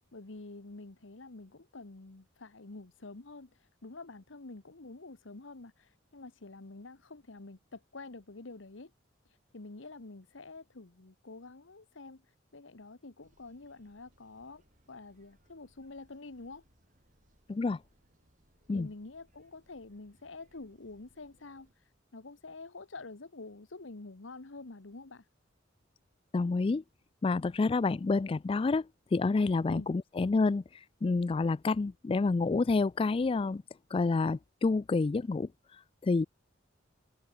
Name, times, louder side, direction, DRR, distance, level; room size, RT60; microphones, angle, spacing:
voice 1, 0.1-8.9 9.5-12.2 12.5-16.6 18.7-21.7 22.1-25.2 29.7-29.9, left 3 dB, 85° left, 1.3 m, -47 dB
sound 1, 13.2-21.7, right 1 dB, 40° right, 6.8 m, -69 dB
voice 2, 17.5-17.8 18.7-18.9 26.3-26.8 27.2-33.6 33.9-36.2, left 3 dB, 30° left, 0.3 m, -29 dB
head